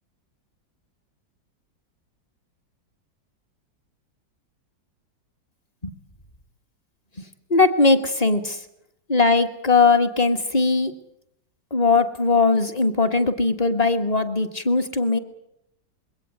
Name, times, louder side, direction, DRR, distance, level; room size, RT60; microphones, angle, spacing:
voice 1, 7.5-8.6 9.1-10.9 11.7-15.2, left 3 dB, 25° left, 8 dB, 1.3 m, -19 dB
22.0 x 17.0 x 9.2 m, 0.79 s
omnidirectional pair, 2.0 m